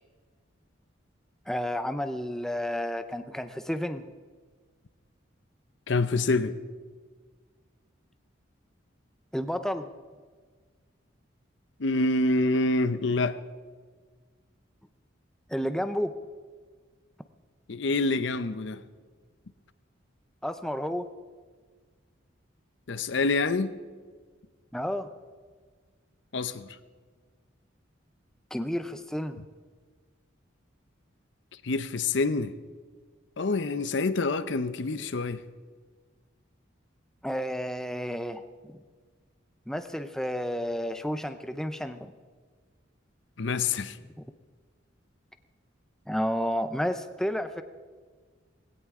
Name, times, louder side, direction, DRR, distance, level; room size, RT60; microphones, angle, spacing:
voice 1, 1.5-4.0 9.3-9.9 15.5-16.1 20.4-21.1 24.7-25.1 28.5-29.4 37.2-38.4 38.7-38.8 39.7-42.1 46.1-47.6, equal, 5° left, 0.5 m, -31 dB
voice 2, 5.9-6.6 11.8-13.4 17.7-18.8 22.9-23.7 26.3-26.7 31.6-32.5 33.4-35.4 43.4-44.0, left 3 dB, 65° left, 0.7 m, -26 dB
19.0 x 16.5 x 3.7 m
head